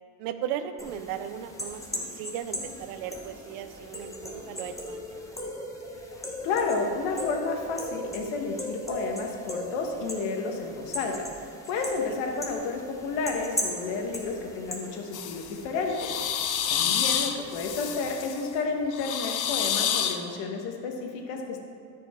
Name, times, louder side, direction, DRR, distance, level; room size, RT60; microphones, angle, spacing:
voice 1, 0.2-5.2 16.6-17.0, right 9 dB, 80° right, 10 dB, 0.7 m, -37 dB
sound 1, 0.8-18.1, left 1 dB, 5° left, 1.0 m, -38 dB
voice 2, 6.4-16.1 16.7-21.6, left 4 dB, 80° left, 2 dB, 1.4 m, -31 dB
sound 2, 15.1-15.5 15.9-18.4 18.9-20.2, left 9 dB, 40° left, 0.6 m, -28 dB
12.5 x 5.2 x 3.7 m, 2.5 s
cardioid pair, 115°, 48 cm